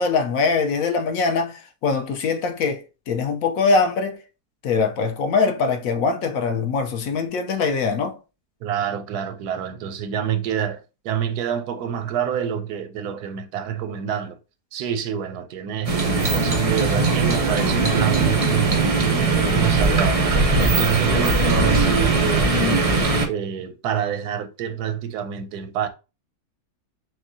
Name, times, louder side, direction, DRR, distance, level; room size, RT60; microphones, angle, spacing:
voice 1, 0.0-4.2 4.6-8.1, left 4 dB, 65° left, 1.0 m, -22 dB
voice 2, 8.6-14.4 14.7-25.9, right 8 dB, 90° right, 1.2 m, -27 dB
sound 1, 15.8-23.3, right 3 dB, 60° right, 0.3 m, -20 dB
6.1 x 2.2 x 2.6 m
omnidirectional pair, 1.7 m